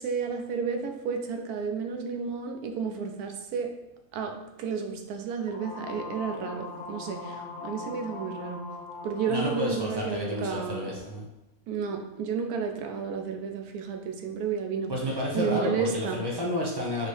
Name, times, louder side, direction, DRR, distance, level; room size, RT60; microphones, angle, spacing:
voice 1, 0.0-3.7 4.1-8.6 9.0-10.9 11.7-14.9 15.3-16.2, right 5 dB, 85° right, 4 dB, 1.1 m, -32 dB
sound 1, 5.5-10.0, left 3 dB, 85° left, 0.4 m, -40 dB
voice 2, 9.3-11.3 14.9-17.1, left 1 dB, 25° right, -3 dB, 0.6 m, -30 dB
4.4 x 3.0 x 3.2 m, 0.95 s
omnidirectional pair, 1.6 m